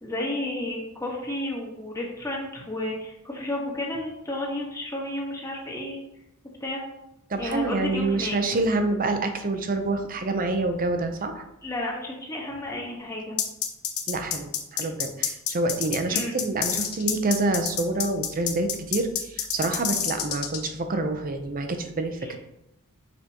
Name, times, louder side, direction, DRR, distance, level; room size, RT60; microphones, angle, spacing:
voice 1, 0.0-6.0 6.6-6.8 7.4-8.4 11.6-13.4 16.1-16.4 22.2-22.3, left 1 dB, 15° left, -3 dB, 1.4 m, -32 dB
voice 2, 7.3-11.4 14.1-22.4, right 2 dB, 40° right, 6 dB, 0.7 m, -27 dB
sound 1, 13.4-20.7, left 9 dB, 80° left, 0.8 m, -28 dB
6.8 x 4.8 x 2.9 m, 0.88 s
head